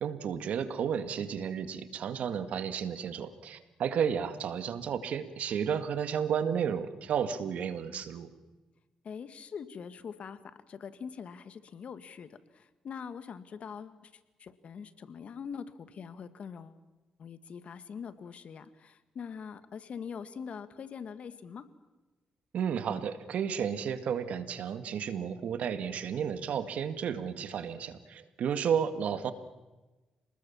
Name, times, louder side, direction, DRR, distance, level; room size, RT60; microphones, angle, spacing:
voice 1, 0.0-8.3 22.5-29.3, right 7 dB, 75° right, 11 dB, 2.0 m, -32 dB
voice 2, 9.0-14.1 14.4-16.8 17.2-21.7, left 6 dB, 60° left, 12 dB, 1.9 m, -43 dB
28.5 x 20.0 x 7.3 m, 1.2 s
supercardioid pair, 60°, 2 cm